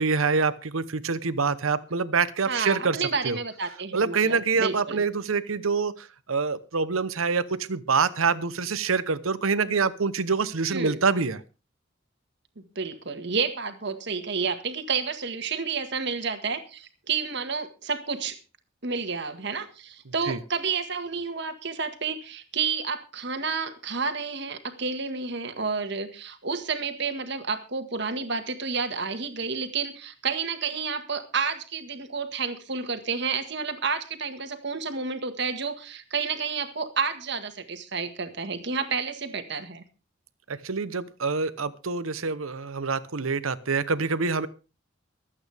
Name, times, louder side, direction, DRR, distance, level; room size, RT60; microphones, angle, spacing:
voice 1, 0.0-3.0 3.2-3.4 3.9-11.4 20.3-20.4 40.5-44.5, right 4 dB, 85° right, 15 dB, 0.9 m, -26 dB
voice 2, 2.5-5.0 10.7-11.0 12.8-18.4 18.8-39.8, right 5 dB, 55° right, 8 dB, 1.7 m, -30 dB
24.0 x 8.8 x 3.5 m, 0.32 s
head